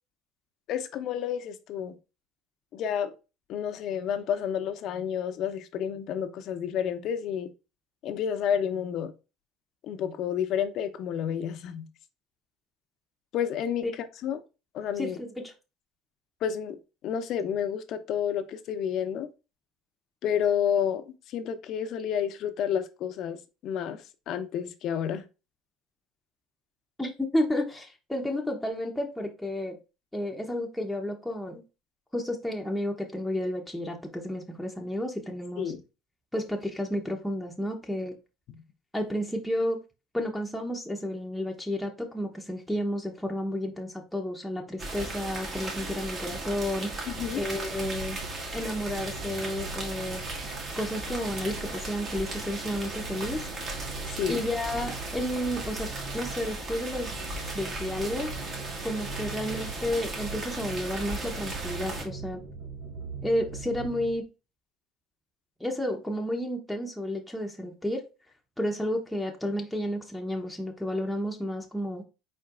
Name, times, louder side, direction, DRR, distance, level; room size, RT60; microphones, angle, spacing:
voice 1, 0.7-2.0 2.7-3.1 3.5-7.5 8.0-9.1 9.8-11.9 13.3-14.4 14.7-15.2 16.4-16.8 17.0-19.3 20.2-25.2 35.6-35.8 47.1-47.4 54.1-54.4, left 8 dB, 60° left, 0.7 m, -30 dB
voice 2, 15.0-15.5 27.0-29.7 30.1-31.6 32.1-35.7 36.3-38.1 38.9-39.8 40.1-48.2 48.5-50.2 50.8-53.4 54.3-55.9 56.1-57.1 57.5-58.3 58.8-62.4 63.2-64.2 65.6-68.0 68.6-72.0, left 1 dB, 5° left, 0.8 m, -31 dB
sound 1, 44.8-62.0, right 2 dB, 45° right, 1.7 m, -36 dB
sound 2, 47.1-64.2, right 4 dB, 85° right, 1.3 m, -42 dB
4.4 x 4.4 x 2.5 m
supercardioid pair, 85°, 0 cm